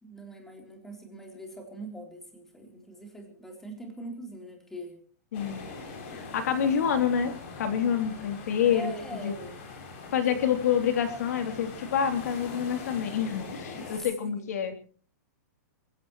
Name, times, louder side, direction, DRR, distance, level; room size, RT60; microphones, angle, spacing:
voice 1, 0.0-5.0 6.1-6.2 8.6-9.6 10.0-10.4 13.8-14.5, right 1 dB, 5° left, 2 dB, 3.8 m, -43 dB
voice 2, 5.3-5.6 6.1-8.9 9.2-9.3 10.1-14.7, left 8 dB, 60° left, 6 dB, 3.4 m, -27 dB
sound 1, 5.3-14.0, left 4 dB, 40° left, 6.8 m, -42 dB
29.0 x 15.5 x 3.2 m, 0.43 s
hypercardioid pair, 165°, 9 cm